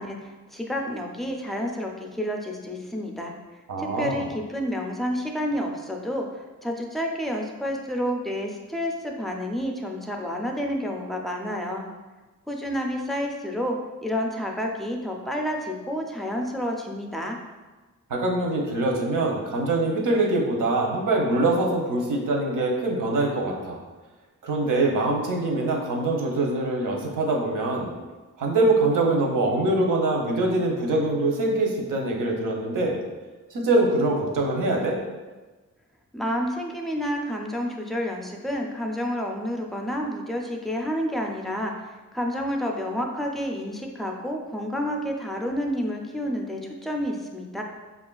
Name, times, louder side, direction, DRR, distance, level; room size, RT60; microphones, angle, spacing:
voice 1, 0.0-3.3 3.8-11.8 12.5-13.8 14.0-17.4 36.1-47.6, equal, ahead, 1 dB, 0.3 m, -29 dB
voice 2, 3.7-4.3 18.1-23.8 24.4-27.9 28.4-33.0 33.5-35.0, right 2 dB, 90° right, 0 dB, 0.7 m, -24 dB
5.3 x 2.4 x 2.2 m, 1.2 s
wide cardioid pair, 120°, 31 cm